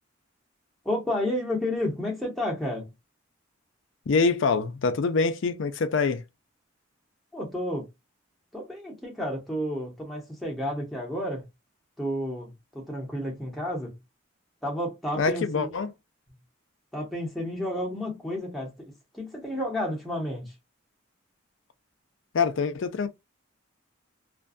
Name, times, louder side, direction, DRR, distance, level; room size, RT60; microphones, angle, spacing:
voice 1, 0.8-2.9 7.3-7.9 8.5-11.5 12.0-14.0 14.6-15.7 16.9-18.7 19.1-20.5, left 1 dB, ahead, 0.9 m, -31 dB
voice 2, 4.1-6.2 15.1-15.9 22.3-23.1, left 4 dB, 65° left, 0.4 m, -25 dB
2.5 x 2.2 x 2.5 m
head